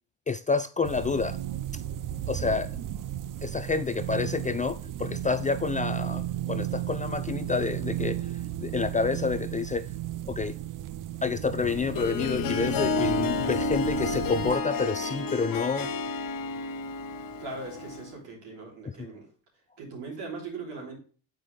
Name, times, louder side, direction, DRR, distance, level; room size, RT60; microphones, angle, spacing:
voice 1, 0.3-1.4 2.3-2.7 3.4-6.2 6.5-8.2 8.6-9.9 10.3-10.6 11.2-15.9, left 4 dB, 20° left, 0.3 m, -28 dB
sound 1, 0.8-14.6, right 12 dB, 50° right, 0.6 m, -34 dB
Harp, 11.6-18.1, left 3 dB, 50° left, 1.2 m, -30 dB
voice 2, 17.4-19.3 19.8-21.0, right 3 dB, 75° right, 3.4 m, -39 dB
7.6 x 4.8 x 3.2 m
supercardioid pair, 70°, 42 cm